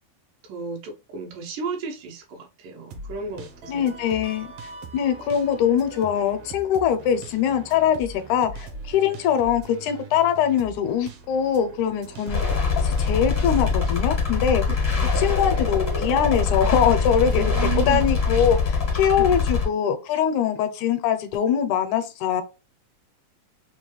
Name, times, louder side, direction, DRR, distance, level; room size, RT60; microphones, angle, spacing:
voice 1, 0.4-3.9 15.0-15.3 17.3-18.1 19.2-19.4, right 5 dB, 90° right, 2.5 m, -33 dB
sound 1, 2.9-18.3, right 3 dB, 75° right, 1.4 m, -41 dB
voice 2, 3.7-4.5 4.9-12.5 12.8-14.6 15.2-22.4, left 8 dB, 80° left, 2.0 m, -22 dB
sound 2, 12.3-19.6, left 5 dB, 55° left, 0.4 m, -23 dB
5.4 x 2.2 x 3.1 m
omnidirectional pair, 3.6 m